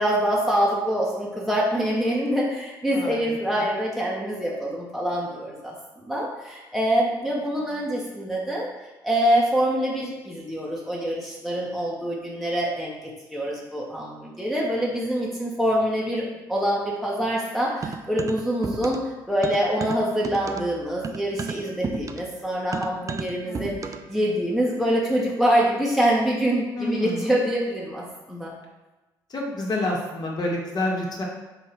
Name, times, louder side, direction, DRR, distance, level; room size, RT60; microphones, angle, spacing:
voice 1, 0.0-8.7 9.0-19.0 19.3-28.5, equal, ahead, -5 dB, 1.4 m, -25 dB
voice 2, 2.9-3.7 23.5-23.8 26.7-27.4 29.3-31.2, left 1 dB, 35° left, -2 dB, 1.8 m, -29 dB
sound 1, 17.8-19.1 19.4-24.2, right 5 dB, 30° right, 0.5 m, -33 dB
5.6 x 3.9 x 4.5 m, 1.1 s
figure-of-eight pair, 50°, 11 cm